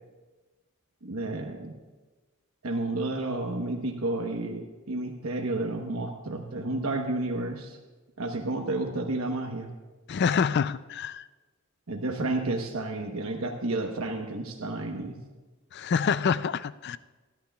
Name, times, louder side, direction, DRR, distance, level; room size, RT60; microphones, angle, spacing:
voice 1, 1.0-1.7 2.6-7.8 8.2-9.7 11.9-15.2, right 2 dB, 85° right, 3 dB, 1.1 m, -31 dB
voice 2, 10.1-11.2 15.7-17.0, left 6 dB, 50° left, 16 dB, 0.4 m, -26 dB
25.5 x 11.5 x 2.3 m, 1.2 s
head